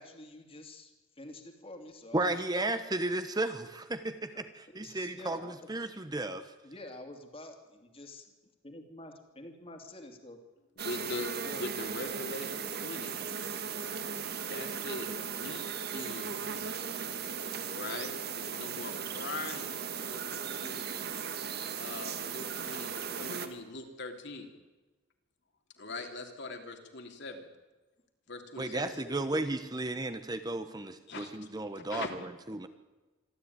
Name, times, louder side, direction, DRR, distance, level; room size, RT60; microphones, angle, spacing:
voice 1, 0.0-2.4 4.7-5.7 6.6-8.3 8.6-10.4 11.4-11.7, left 1 dB, 30° left, 5 dB, 2.7 m, -48 dB
voice 2, 2.1-6.5 28.6-32.2 32.5-32.7, right 2 dB, 20° right, 9 dB, 1.1 m, -34 dB
voice 3, 10.8-13.2 14.4-15.7 15.9-16.6 17.6-20.9 21.1-21.2 21.8-24.5 25.8-27.5 28.3-29.2 31.1-31.3 31.7-32.1, left 2 dB, 60° left, 4 dB, 3.2 m, -42 dB
sound 1, 10.8-23.5, right 6 dB, 55° right, 1.6 m, -37 dB
26.0 x 13.0 x 9.6 m, 1.2 s
head